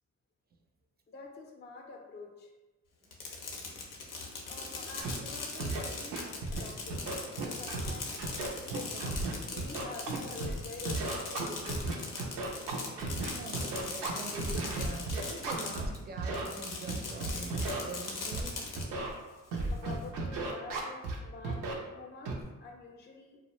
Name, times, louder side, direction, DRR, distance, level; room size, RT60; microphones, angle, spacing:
voice 1, 1.1-2.5 4.5-6.2 6.5-9.2 9.5-12.0 12.9-13.2 19.7-21.6 21.9-22.3 22.6-23.4, left 3 dB, 35° left, 1 dB, 0.4 m, -47 dB
Fireworks, 3.0-16.0 16.3-18.8, left 4 dB, 90° left, 0.5 m, -40 dB
Scratching (performance technique), 5.0-5.1 5.6-5.8 6.1-6.6 6.9-7.9 8.2-10.5 10.8-15.9 16.2-16.4 16.9-17.8 18.3-18.4 18.8-19.1 19.5-21.2 21.4-21.7 22.3-22.4, right 3 dB, 90° right, 0.5 m, -34 dB
voice 2, 13.3-18.5, right 3 dB, 30° right, 3 dB, 0.4 m, -44 dB
2.4 x 2.1 x 2.9 m, 1.1 s
supercardioid pair, 50°, 32 cm